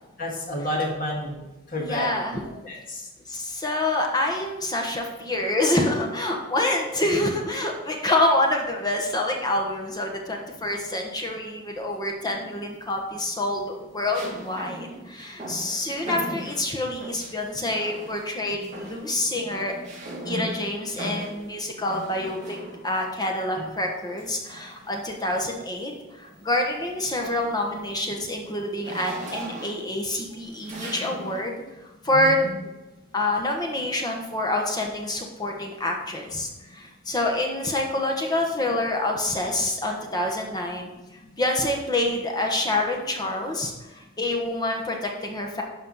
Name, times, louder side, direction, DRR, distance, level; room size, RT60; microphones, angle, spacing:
voice 1, 0.2-1.4 1.7-2.1 2.6-3.0 23.6-23.7 32.1-32.5, left 1 dB, 40° left, -2 dB, 2.2 m, -30 dB
voice 2, 1.8-2.4 3.3-19.7 20.2-22.6 22.8-25.9 26.2-31.6 32.0-32.5 33.1-40.9 41.4-45.6, left 1 dB, 20° left, 1 dB, 1.2 m, -27 dB
sound 1, 12.2-12.8 14.1-17.4 17.8-18.3 18.6-23.0 24.2-25.6 26.1-26.3 26.7-31.5, right 1 dB, 35° right, 2.9 m, -39 dB
12.0 x 4.4 x 5.6 m, 1.1 s
head